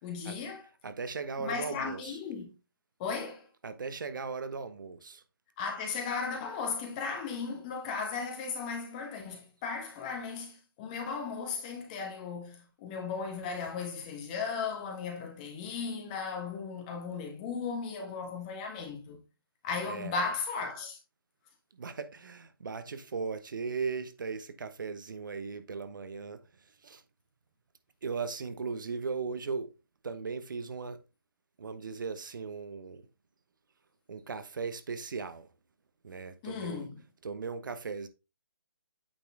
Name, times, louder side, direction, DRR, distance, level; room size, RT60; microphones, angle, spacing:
voice 1, 0.0-0.7 1.4-2.5 3.0-3.5 5.6-19.2 19.6-21.0 36.4-37.0, left 5 dB, 20° left, 1.2 m, -36 dB
voice 2, 0.8-2.2 3.6-5.2 19.8-20.3 21.7-26.4 26.8-27.0 28.0-29.7 30.0-31.0 31.6-33.0 34.1-35.5 36.0-36.8 37.2-38.1, right 5 dB, 60° right, 1.1 m, -37 dB
8.9 x 4.3 x 3.5 m
figure-of-eight pair, 160°, 12 cm